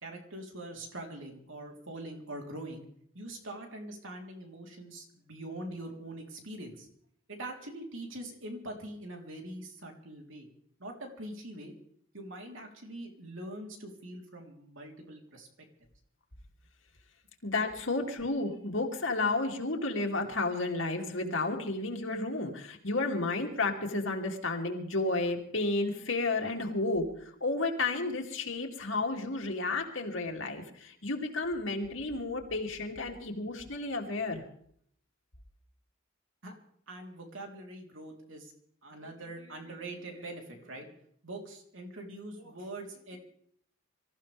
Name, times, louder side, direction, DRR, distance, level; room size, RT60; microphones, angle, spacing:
voice 1, 0.0-2.8 3.1-6.9 7.3-10.5 10.8-11.7 12.1-15.5 36.4-36.5 36.9-38.5 38.8-43.2, right 1 dB, 70° right, 2 dB, 3.7 m, -43 dB
voice 2, 17.4-34.4, left 2 dB, 65° left, 1 dB, 2.8 m, -32 dB
25.5 x 14.5 x 3.5 m, 0.65 s
head